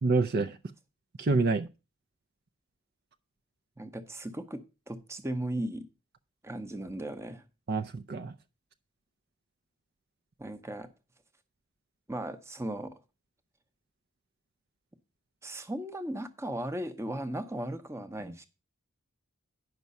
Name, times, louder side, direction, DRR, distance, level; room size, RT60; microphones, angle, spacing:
voice 1, 0.0-0.6 1.2-1.7 7.7-8.3, right 3 dB, 45° right, 0.5 m, -27 dB
voice 2, 3.8-5.9 6.4-7.4 10.4-10.9 12.1-13.0 15.4-18.4, right 1 dB, 10° right, 0.8 m, -37 dB
9.4 x 6.0 x 5.4 m
head